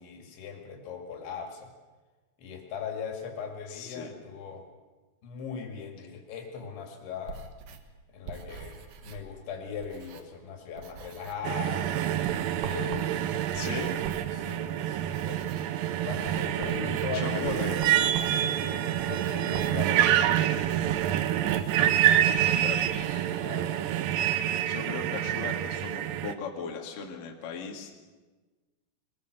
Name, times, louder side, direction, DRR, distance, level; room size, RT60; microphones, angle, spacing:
voice 1, 0.0-1.7 2.4-4.7 5.2-7.5 8.1-13.1 14.3-15.5 16.0-17.7 18.2-21.0 22.3-23.7, left 6 dB, 80° left, 3 dB, 4.6 m, -40 dB
voice 2, 3.7-4.1 13.5-13.9 17.1-17.8 19.5-19.6 22.6-23.3 24.7-28.0, left 6 dB, 55° left, 1 dB, 3.2 m, -38 dB
sound 1, 7.2-10.5 10.8-11.5 11.8-23.1, right 6 dB, 65° right, 2.5 m, -46 dB
sound 2, 11.4-26.3, right 11 dB, 90° right, 2.0 m, -27 dB
22.5 x 20.5 x 6.6 m, 1.3 s
omnidirectional pair, 5.2 m